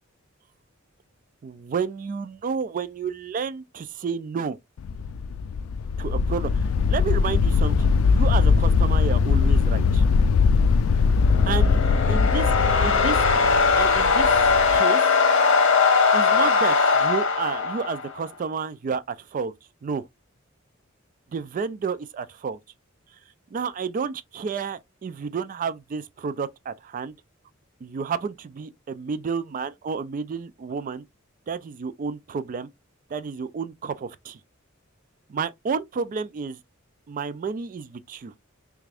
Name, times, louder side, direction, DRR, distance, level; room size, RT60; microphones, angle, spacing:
voice 1, 1.4-4.6 6.0-6.5 6.8-10.0 11.5-11.8 12.1-12.5 12.8-13.2 13.7-14.3 14.7-15.1 16.1-19.5 19.8-20.0 21.3-22.6 23.5-27.1 27.8-31.0 31.5-32.7 33.1-34.4 35.3-36.6 37.1-38.3, right 5 dB, 40° right, 0.3 m, -30 dB
sound 1, 4.8-14.8, left 5 dB, 80° left, 0.3 m, -21 dB
sound 2, 11.1-18.2, left 5 dB, 65° left, 1.0 m, -20 dB
3.4 x 3.3 x 2.4 m
head